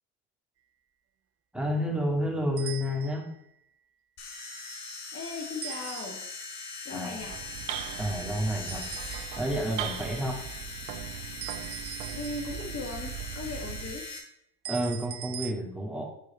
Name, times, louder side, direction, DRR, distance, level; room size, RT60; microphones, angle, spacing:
voice 1, 1.5-3.2 6.9-7.2 8.0-8.8 9.4-10.4 14.7-16.1, equal, ahead, -1 dB, 2.4 m, -30 dB
sound 1, 2.6-3.4 5.6-6.5 8.7-9.6 11.4-12.8 14.6-15.5, right 12 dB, 35° right, 0.6 m, -41 dB
sound 2, 4.2-14.2, left 3 dB, 70° left, 2.3 m, -41 dB
voice 2, 5.1-6.2 6.8-7.4 12.1-14.0, left 3 dB, 30° left, 1 dB, 1.6 m, -38 dB
sound 3, 7.1-14.1, right 10 dB, 65° right, 0.8 m, -39 dB
9.7 x 4.8 x 4.3 m, 0.75 s
hypercardioid pair, 75°, 43 cm